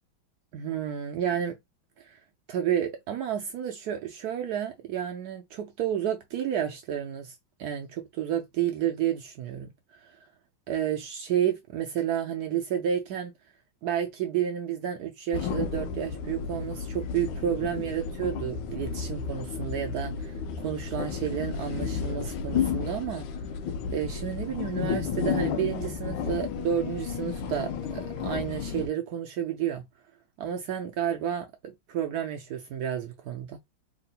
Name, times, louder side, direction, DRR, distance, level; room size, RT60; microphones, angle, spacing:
voice 1, 0.5-1.5 2.0-2.2 2.5-9.7 10.0-10.1 10.7-13.3 13.8-23.3 23.9-29.8 30.4-33.6, right 9 dB, 80° right, 0.8 m, -31 dB
sound 1, 15.3-28.9, left 6 dB, 75° left, 1.3 m, -32 dB
3.6 x 2.1 x 4.0 m
omnidirectional pair, 2.3 m